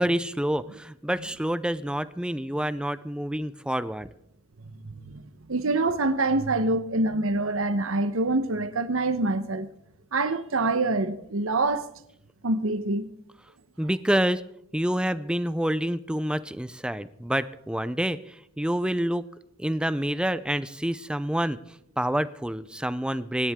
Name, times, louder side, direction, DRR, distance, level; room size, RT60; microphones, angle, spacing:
voice 1, 0.0-4.1 13.8-14.4 14.7-19.2 19.6-21.6 22.0-23.5, right 1 dB, 5° right, 0.5 m, -27 dB
voice 2, 4.8-5.2 5.5-9.7 10.1-11.9 12.4-13.1, right 2 dB, 75° right, 1.1 m, -25 dB
25.5 x 10.5 x 3.7 m
head